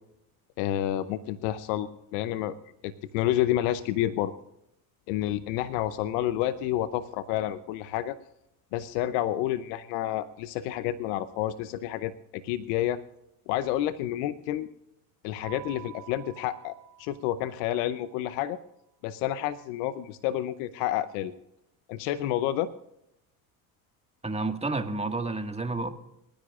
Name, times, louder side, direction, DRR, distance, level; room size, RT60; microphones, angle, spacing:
voice 1, 0.6-2.5 2.8-4.3 5.1-8.2 8.7-13.0 13.5-14.7 15.2-18.6 19.0-21.3 21.9-22.7, left 12 dB, 80° left, 0.8 m, -29 dB
Keyboard (musical), 15.4-18.0, right 14 dB, 60° right, 2.2 m, -48 dB
voice 2, 24.2-25.9, right 3 dB, 15° right, 1.8 m, -30 dB
28.0 x 10.5 x 2.5 m
hypercardioid pair, 70°, 47 cm